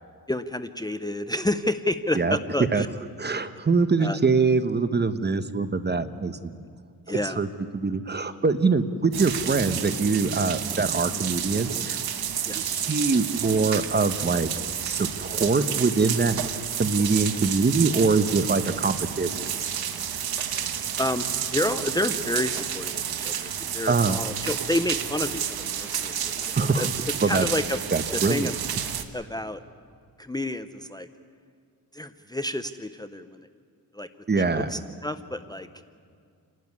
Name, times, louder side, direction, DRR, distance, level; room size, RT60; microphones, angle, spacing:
voice 1, 0.3-2.9 4.0-4.2 7.1-7.4 11.1-11.2 12.4-12.6 21.0-21.3 21.5-26.9 27.3-27.8 28.1-28.5 29.1-29.6 30.2-31.1 31.9-33.5 33.9-34.1 34.4-35.7, left 1 dB, 10° left, 10 dB, 0.7 m, -29 dB
voice 2, 3.2-6.6 7.2-7.5 7.7-12.0 12.5-14.5 14.8-16.4 16.8-19.4 23.9-24.2 26.6-26.9 27.2-27.5 27.9-28.5 34.3-34.7, right 4 dB, 30° right, 11 dB, 1.0 m, -24 dB
sound 1, 8.1-9.3 9.9-10.3 10.5-10.6 11.6-13.5 15.0-15.3 15.8-16.2 17.1-17.2 19.5-19.9, left 2 dB, 35° left, 4.2 m, -52 dB
sound 2, 9.1-29.0, right 9 dB, 85° right, 1.3 m, -30 dB
28.5 x 12.0 x 9.6 m, 2.3 s
cardioid pair, 95°, 36 cm